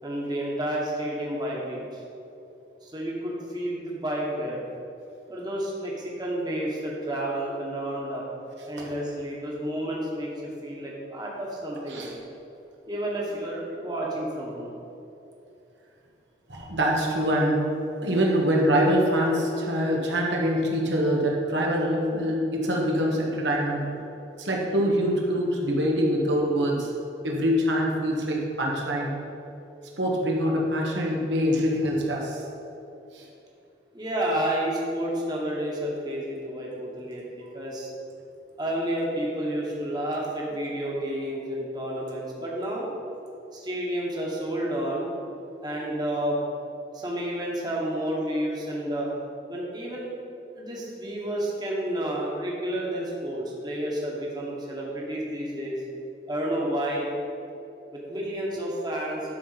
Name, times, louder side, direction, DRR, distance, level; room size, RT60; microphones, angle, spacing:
voice 1, 0.0-2.0 2.8-4.6 5.3-8.2 8.6-12.2 12.9-14.7 33.9-37.9 38.6-42.9 43.5-45.1 45.6-46.4 46.9-49.1 49.5-50.1 50.6-55.8 56.3-57.1 57.9-59.3, right 1 dB, 25° right, -4 dB, 1.3 m, -30 dB
voice 2, 16.5-17.6 18.0-23.9 24.4-26.9 27.2-29.1 30.0-32.4 33.1-33.2 37.4-37.6, equal, 85° right, -2 dB, 1.4 m, -24 dB
11.0 x 4.2 x 5.8 m, 2.8 s
head